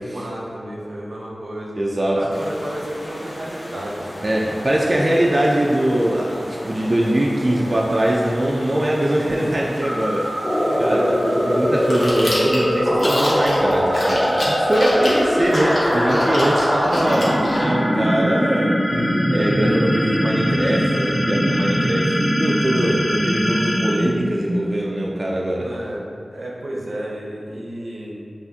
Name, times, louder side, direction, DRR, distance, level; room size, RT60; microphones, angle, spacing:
voice 1, 0.1-1.8 2.1-5.0 10.6-11.6 25.3-28.2, right 1 dB, 80° right, -4 dB, 0.7 m, -32 dB
voice 2, 1.8-2.2 4.2-18.8 19.0-25.7, right 1 dB, 40° right, -3 dB, 0.3 m, -22 dB
sound 1, 2.3-12.1, equal, 35° left, 0.8 m, -36 dB
sound 2, 9.8-24.9, equal, 15° left, 1.0 m, -21 dB
Chewing mastication, 11.8-17.6, left 1 dB, 70° left, 0.8 m, -28 dB
5.6 x 2.5 x 2.7 m, 2.4 s
wide cardioid pair, 70°, 0 cm